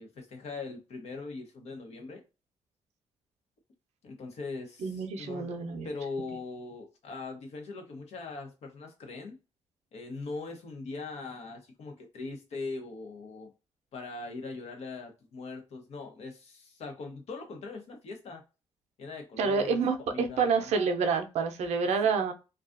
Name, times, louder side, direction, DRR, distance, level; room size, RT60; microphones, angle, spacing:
voice 1, 0.0-2.2 4.0-5.5 5.8-9.4 9.9-13.5 13.9-18.4 19.0-20.7 22.0-22.1, left 3 dB, 75° left, 0.9 m, -41 dB
voice 2, 4.8-5.9 19.4-22.3, right 5 dB, 85° right, 0.5 m, -28 dB
2.4 x 2.3 x 2.4 m
cardioid pair, 100°, 11 cm